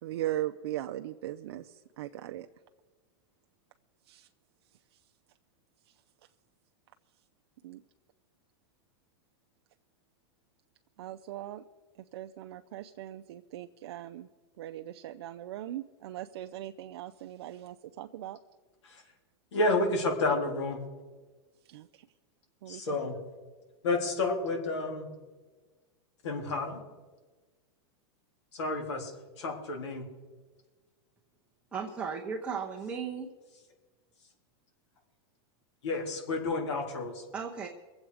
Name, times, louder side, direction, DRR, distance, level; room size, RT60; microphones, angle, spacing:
voice 1, 0.0-2.5 4.1-4.3 7.6-7.8 11.0-11.6 12.1-14.3 14.6-18.4 21.7-22.1 22.6-22.9, right 13 dB, 65° right, 6 dB, 0.6 m, -39 dB
voice 2, 19.5-20.8 22.7-23.2 23.8-25.1 26.2-26.8 28.5-29.1 29.4-30.0 35.8-37.2, left 2 dB, 85° left, 2 dB, 3.6 m, -30 dB
voice 3, 31.7-33.3 37.3-37.7, right 6 dB, 10° right, -3 dB, 0.8 m, -35 dB
23.0 x 8.0 x 5.0 m, 1.3 s
supercardioid pair, 165°, 14 cm